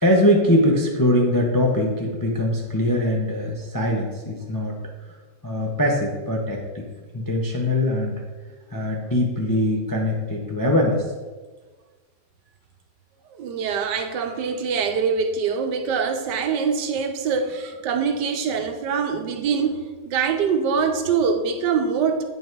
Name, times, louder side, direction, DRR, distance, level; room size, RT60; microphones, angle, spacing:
voice 1, 0.0-4.8 5.4-6.9 7.1-8.2 8.7-11.1, left 1 dB, 25° left, 0.4 m, -22 dB
voice 2, 13.3-22.2, right 6 dB, 80° right, 1.4 m, -24 dB
8.1 x 5.5 x 4.6 m
omnidirectional pair, 1.9 m